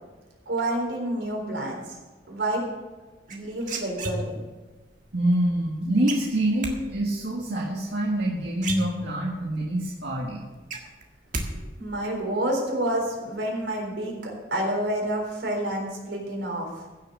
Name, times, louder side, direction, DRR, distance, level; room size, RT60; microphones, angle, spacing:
voice 1, 0.5-2.0 2.3-2.6 3.3-4.4 11.8-16.7, right 1 dB, 85° right, 0 dB, 4.1 m, -28 dB
sound 1, 3.3-4.6 6.1-6.7 8.2-8.3 8.6-9.4 9.8-9.9 10.2-11.5 11.7-12.2, right 3 dB, 45° right, 1.7 m, -33 dB
voice 2, 5.1-10.4, right 1 dB, 70° right, -3 dB, 1.8 m, -26 dB
15.5 x 6.8 x 6.4 m, 1.2 s
head